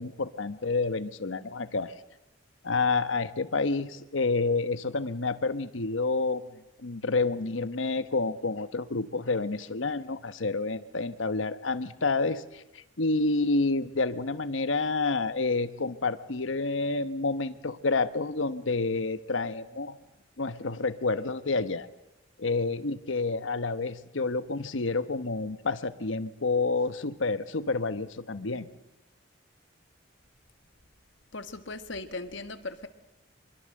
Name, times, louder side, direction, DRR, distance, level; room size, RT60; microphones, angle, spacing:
voice 1, 0.0-1.9 2.6-6.5 6.8-20.0 20.4-21.9 22.4-28.7, left 3 dB, 90° left, 13 dB, 1.1 m, -29 dB
voice 2, 31.3-32.9, left 3 dB, 70° left, 9 dB, 1.7 m, -38 dB
25.0 x 23.0 x 7.7 m, 0.96 s
head